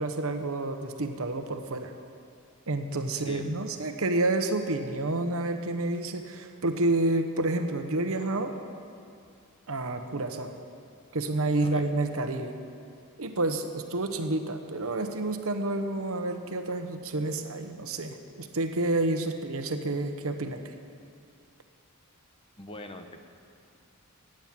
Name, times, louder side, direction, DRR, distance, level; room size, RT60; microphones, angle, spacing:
voice 1, 0.0-1.9 2.7-8.5 9.7-10.5 11.1-12.5 13.2-20.6, right 2 dB, 65° right, 7 dB, 1.1 m, -29 dB
voice 2, 3.1-3.6 11.6-11.9 22.6-23.3, left 1 dB, 25° left, 6 dB, 1.0 m, -42 dB
14.5 x 8.9 x 9.1 m, 2.4 s
head